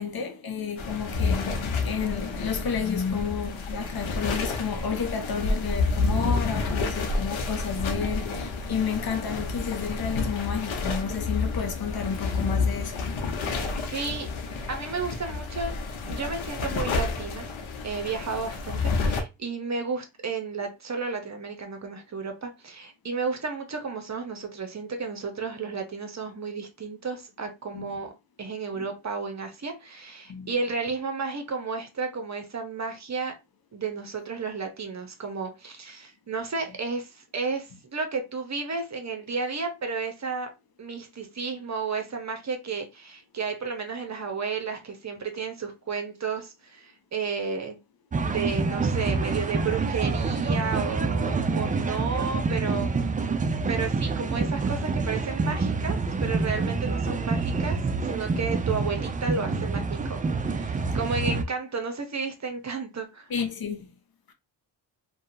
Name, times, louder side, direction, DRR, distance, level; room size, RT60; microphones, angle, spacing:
voice 1, 0.0-13.0 27.7-27.9 28.8-28.9 30.3-30.5 63.3-63.9, left 6 dB, 50° left, 0.7 m, -31 dB
sound 1, 0.8-19.2, left 3 dB, 80° left, 0.8 m, -29 dB
voice 2, 13.4-14.3 14.7-15.7 16.1-17.5 17.8-28.1 28.4-33.3 33.7-40.5 40.8-47.8 48.2-52.9 53.7-57.8 58.0-63.3, right 4 dB, 35° right, 0.8 m, -32 dB
sound 2, 48.1-61.4, right 4 dB, 20° right, 0.3 m, -27 dB
2.7 x 2.3 x 2.5 m
cardioid pair, 60°, 47 cm